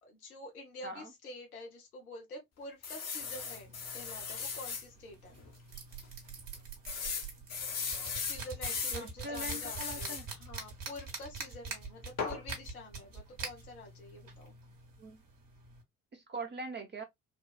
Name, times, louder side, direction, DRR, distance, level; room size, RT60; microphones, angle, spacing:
voice 1, 0.0-5.4 8.2-14.5, left 1 dB, 85° left, 0.8 m, -48 dB
sound 1, 2.8-4.9 5.4-5.5 5.8-5.9 6.9-9.0 9.4-10.3 12.2-12.4, left 5 dB, 35° left, 0.9 m, -37 dB
sound 2, 3.2-15.8, right 4 dB, 50° right, 1.3 m, -46 dB
voice 2, 8.9-10.3 15.0-15.2 16.1-17.0, right 2 dB, 25° right, 0.7 m, -42 dB
3.6 x 2.3 x 2.3 m
figure-of-eight pair, 45°, 43 cm